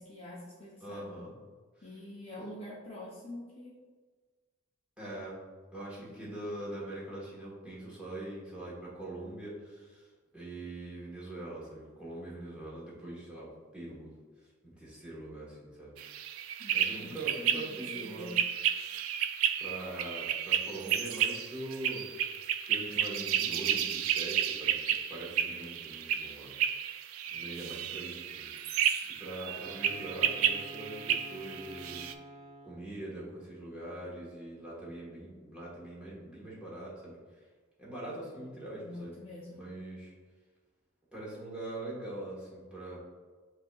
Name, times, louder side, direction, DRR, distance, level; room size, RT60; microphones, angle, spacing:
voice 1, 0.0-1.2 1.8-3.8 6.0-6.4 16.6-18.4 38.8-39.7, left 1 dB, 25° left, -5 dB, 0.6 m, -46 dB
voice 2, 0.8-1.3 1.8-1.9 5.0-5.4 5.7-14.1 14.4-15.9 16.7-18.3 19.6-22.3 22.7-26.5 27.3-28.5 29.1-32.1 32.6-37.5 37.8-39.1 39.5-40.1 41.1-43.0, right 1 dB, 5° right, -7 dB, 1.2 m, -43 dB
sound 1, 16.0-32.1, right 9 dB, 85° right, 0.3 m, -32 dB
Wind instrument woodwind instrument, 29.3-33.0, right 1 dB, 30° right, 0.6 m, -49 dB
7.9 x 2.8 x 2.3 m, 1.4 s
head